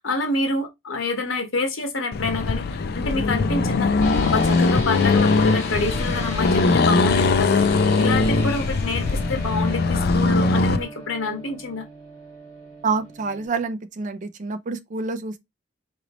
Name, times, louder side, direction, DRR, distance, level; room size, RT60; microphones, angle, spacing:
voice 1, 0.0-11.8, left 3 dB, 85° left, 1.3 m, -27 dB
Accelerating revving vroom, 2.1-10.8, left 3 dB, 50° left, 0.4 m, -20 dB
sound 1, 4.0-13.5, right 1 dB, 20° left, 2.1 m, -38 dB
voice 2, 12.8-15.4, right 4 dB, 40° right, 0.4 m, -27 dB
4.0 x 3.0 x 2.9 m
head